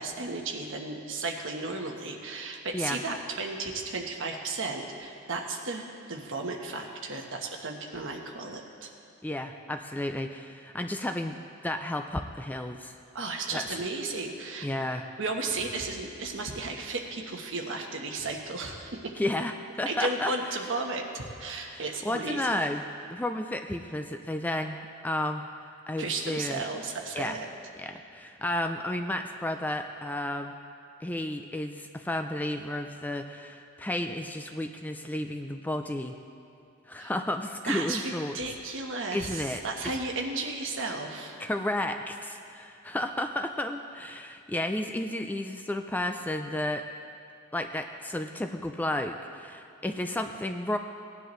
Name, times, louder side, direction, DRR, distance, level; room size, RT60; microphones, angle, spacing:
voice 1, 0.0-5.8 6.1-8.9 13.1-14.7 15.2-19.1 19.9-22.6 26.0-27.5 37.0-37.1 37.6-41.3, right 3 dB, 65° right, 2 dB, 1.2 m, -34 dB
voice 2, 9.2-12.9 13.5-13.7 14.6-15.1 19.2-20.3 21.7-22.8 23.1-25.5 25.9-26.7 27.1-27.4 27.8-30.5 31.0-36.2 36.9-38.4 39.1-39.6 41.4-46.9 47.5-50.8, left 1 dB, 10° left, 5 dB, 0.3 m, -32 dB
17.5 x 10.0 x 3.2 m, 2.6 s
head